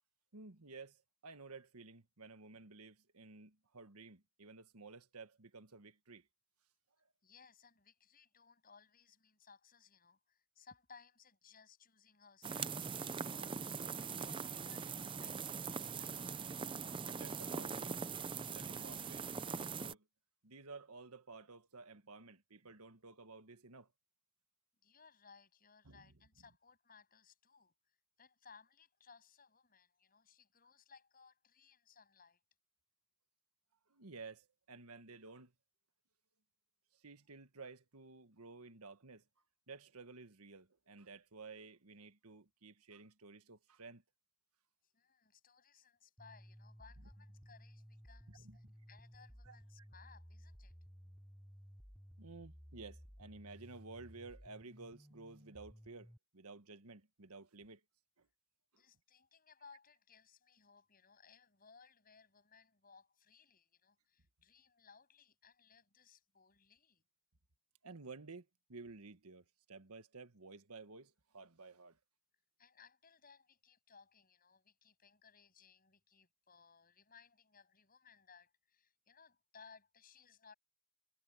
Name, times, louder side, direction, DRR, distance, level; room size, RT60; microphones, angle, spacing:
voice 1, 0.3-6.3 17.1-18.0 18.5-20.1 20.4-23.9 25.8-26.1 33.9-35.5 36.9-39.2 39.7-44.0 48.3-48.7 49.4-49.6 52.2-57.8 58.2-58.3 67.8-72.0, right 3 dB, 85° right, 1.6 m, -54 dB
voice 2, 7.2-16.4 24.8-32.4 44.8-50.8 58.7-67.0 72.6-80.5, left 5 dB, 40° left, 7.4 m, -63 dB
sound 1, 12.4-19.9, right 5 dB, 20° right, 0.5 m, -42 dB
sound 2, 46.2-56.2, equal, ahead, 3.4 m, -57 dB
head